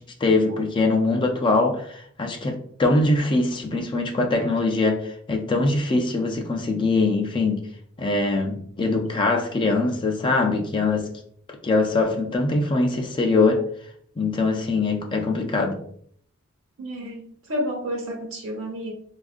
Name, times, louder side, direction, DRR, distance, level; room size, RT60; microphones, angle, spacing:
voice 1, 0.0-7.7 8.0-11.1 11.6-13.6 14.2-15.8, left 3 dB, 25° left, 0.3 m, -22 dB
voice 2, 16.8-18.9, equal, 65° right, 1.0 m, -30 dB
3.6 x 2.4 x 2.4 m
head